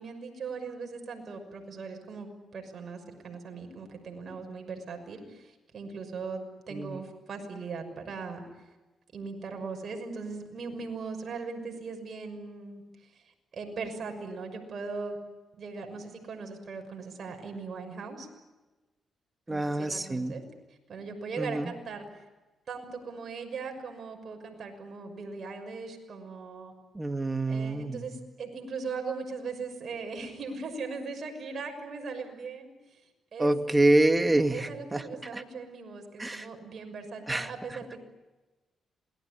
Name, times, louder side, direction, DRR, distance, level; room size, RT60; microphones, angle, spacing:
voice 1, 0.0-6.4 6.7-8.4 9.1-12.8 13.1-13.2 13.5-15.2 15.6-18.3 19.5-20.4 20.9-22.0 22.7-26.7 27.5-32.7 33.3-33.5 34.5-38.0, right 4 dB, 55° right, 4 dB, 6.2 m, -39 dB
voice 2, 6.7-7.0 19.5-20.4 21.4-21.7 26.9-28.0 33.4-35.0 35.3-35.4 36.2-36.5 37.3-37.5, right 2 dB, 20° right, 7 dB, 2.3 m, -26 dB
27.5 x 20.5 x 9.9 m, 1.2 s
cardioid pair, 75°, 0 cm